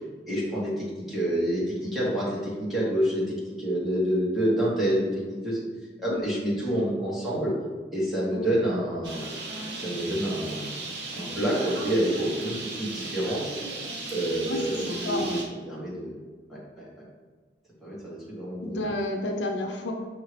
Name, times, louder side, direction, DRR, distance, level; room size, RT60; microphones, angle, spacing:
voice 1, 0.3-5.6 6.0-7.5 7.9-9.2 9.7-10.8 11.1-13.4 14.1-15.4 15.7-16.2 16.5-16.8 17.8-18.8, right 1 dB, ahead, -8 dB, 1.3 m, -28 dB
Bird, 9.0-15.4, right 2 dB, 60° right, 0.9 m, -36 dB
voice 2, 14.4-15.5 18.6-19.9, left 1 dB, 75° left, 3 dB, 0.5 m, -31 dB
5.5 x 2.7 x 3.2 m, 1.4 s
head